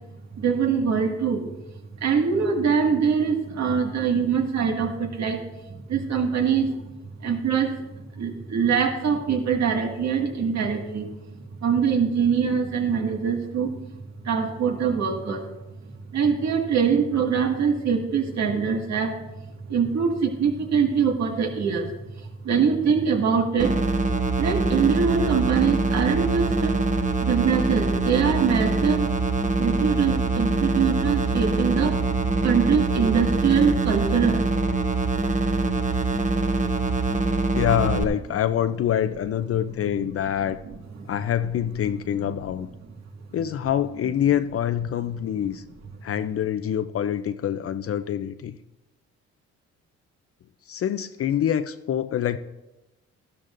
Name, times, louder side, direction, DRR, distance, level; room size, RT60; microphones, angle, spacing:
voice 1, 0.4-1.5 2.0-5.4 5.7-6.7 7.2-7.8 8.2-11.1 11.6-13.7 14.2-15.5 16.1-19.2 19.7-21.9 22.4-23.8 24.3-26.8 27.2-29.1 29.5-32.0 32.4-34.5 41.0-41.1, right 6 dB, 65° right, 3 dB, 1.9 m, -23 dB
sound 1, 23.6-38.0, right 3 dB, 25° right, 1.0 m, -24 dB
voice 2, 37.2-40.6 41.1-42.7 43.3-45.6 46.0-48.6 50.7-52.4, left 10 dB, 50° left, 11 dB, 0.5 m, -25 dB
13.5 x 12.5 x 2.6 m, 0.98 s
cardioid pair, 90°, 30 cm